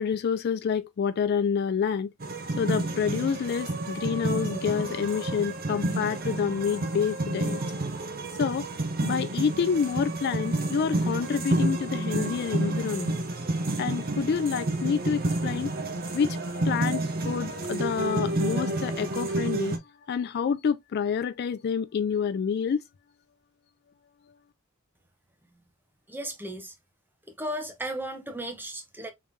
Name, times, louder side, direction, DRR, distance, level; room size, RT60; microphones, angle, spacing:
voice 1, 0.0-2.1 2.6-7.9 8.4-8.7 9.0-13.2 13.8-15.7 16.1-19.8 20.1-22.8, left 6 dB, 55° left, 0.3 m, -28 dB
sound 1, 2.2-19.8, right 2 dB, 45° right, 0.8 m, -30 dB
voice 2, 26.1-26.7 27.4-29.1, right 1 dB, 10° right, 0.8 m, -35 dB
3.5 x 3.2 x 2.5 m
head